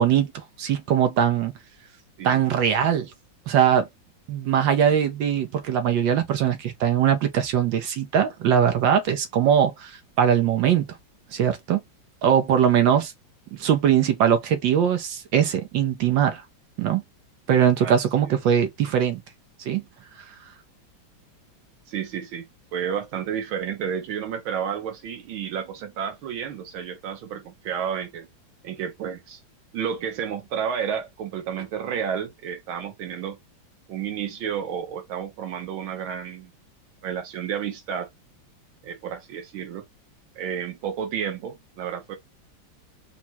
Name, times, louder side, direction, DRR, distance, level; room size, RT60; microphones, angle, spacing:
voice 1, 0.0-1.5 2.2-3.1 3.5-3.9 4.3-10.9 11.3-11.8 12.2-13.1 13.5-16.4 16.8-17.0 17.5-19.2 19.7-19.8, right 9 dB, 75° right, 1.4 m, -21 dB
voice 2, 17.8-18.4 21.9-22.4 22.7-28.3 28.6-29.4 29.7-33.4 33.9-36.5 37.0-38.1 38.8-39.8 40.4-42.2, right 8 dB, 90° right, 1.8 m, -31 dB
4.2 x 2.2 x 4.4 m
omnidirectional pair, 2.2 m